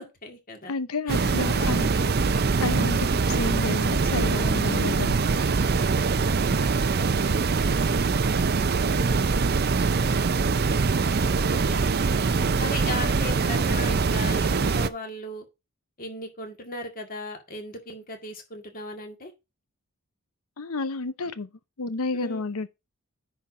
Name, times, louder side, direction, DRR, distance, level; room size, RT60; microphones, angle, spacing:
voice 1, 0.0-0.7 1.1-2.1 4.6-5.0 7.0-7.4 8.9-9.3 11.5-11.9 12.6-15.5 16.0-19.3 22.1-22.4, left 2 dB, 40° left, 2.1 m, -37 dB
voice 2, 0.7-2.0 2.6-5.2 20.6-21.5 21.8-22.7, left 3 dB, 85° left, 0.8 m, -30 dB
sound 1, 1.1-14.9, right 4 dB, 45° right, 0.5 m, -23 dB
10.0 x 4.4 x 5.0 m
head